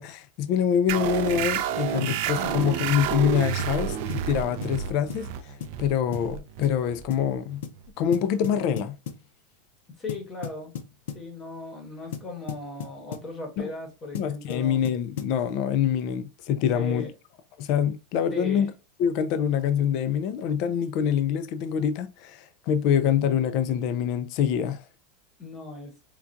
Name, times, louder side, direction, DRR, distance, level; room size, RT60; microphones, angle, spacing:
voice 1, 0.0-7.6 8.0-9.0 13.6-13.7 14.1-17.1 17.6-18.7 19.0-24.8, left 8 dB, 35° left, 0.3 m, -25 dB
sound 1, 0.9-8.0, right 9 dB, 45° right, 0.3 m, -30 dB
sound 2, 2.1-2.3 2.6-2.8 3.1-3.3 3.6-3.8 4.1-4.3 4.6-4.8 5.1-5.3 5.6-5.8 6.1-6.3 6.6-6.8 7.1-7.3 7.6-7.8 8.1-9.3 10.1-11.3 12.1-13.3 14.1-15.4, left 8 dB, 70° left, 0.6 m, -37 dB
voice 2, 2.4-2.7 10.0-10.7 11.1-14.8 16.7-17.1 18.3-18.7 25.4-25.9, left 2 dB, 15° left, 0.9 m, -37 dB
4.4 x 2.3 x 2.5 m
supercardioid pair, 180°, 0 cm